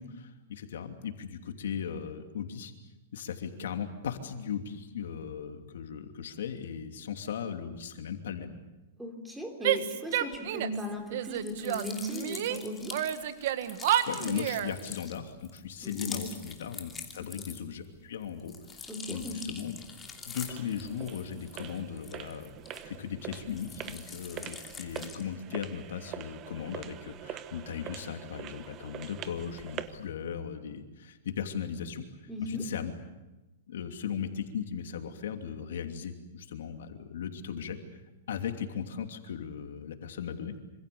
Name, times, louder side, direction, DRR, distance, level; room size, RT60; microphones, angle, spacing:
voice 1, 0.0-2.7 3.1-8.6 14.1-19.8 20.3-22.5 22.8-32.0 32.4-32.9 33.7-37.8 38.3-40.5, left 8 dB, 80° left, 5 dB, 2.9 m, -37 dB
voice 2, 9.0-13.0 15.8-16.3 17.2-17.3 18.9-19.5 32.3-32.7, left 1 dB, 5° right, 3 dB, 3.4 m, -37 dB
Female speech woman speaking / Yell, 9.6-10.8 11.1-12.6 12.9-14.8, right 11 dB, 60° right, 1.7 m, -30 dB
sound 1, 11.4-17.9 18.2-23.1 23.5-25.3, left 5 dB, 15° left, 2.8 m, -45 dB
sound 2, 19.8-30.1, right 11 dB, 25° right, 1.1 m, -44 dB
26.5 x 26.5 x 7.0 m, 1.0 s
hypercardioid pair, 155°, 0 cm